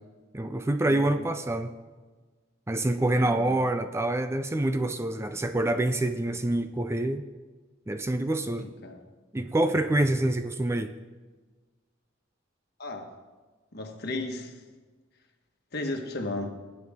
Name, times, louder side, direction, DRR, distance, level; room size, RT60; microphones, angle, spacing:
voice 1, 0.3-1.7 2.7-7.2 7.9-8.7 9.3-10.9, right 1 dB, 15° right, 9 dB, 0.4 m, -26 dB
voice 2, 0.8-1.2 3.1-3.6 8.5-9.0 12.8-13.1 13.7-14.5 15.7-16.5, left 2 dB, 55° left, 4 dB, 1.4 m, -35 dB
18.5 x 9.3 x 3.6 m, 1.3 s
head